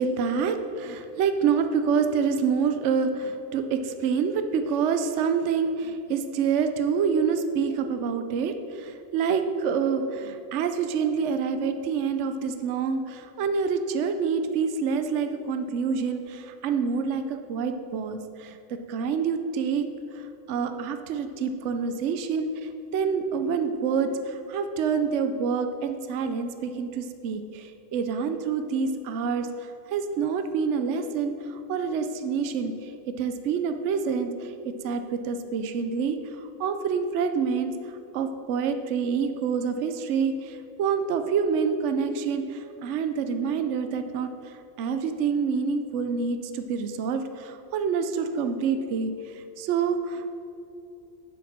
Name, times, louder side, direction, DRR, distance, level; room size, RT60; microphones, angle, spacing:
voice 1, 0.0-19.9 20.1-29.5 29.9-32.9 33.2-37.7 38.1-50.3, right 6 dB, 65° right, 8 dB, 0.9 m, -27 dB
7.9 x 7.5 x 6.0 m, 2.7 s
omnidirectional pair, 1.4 m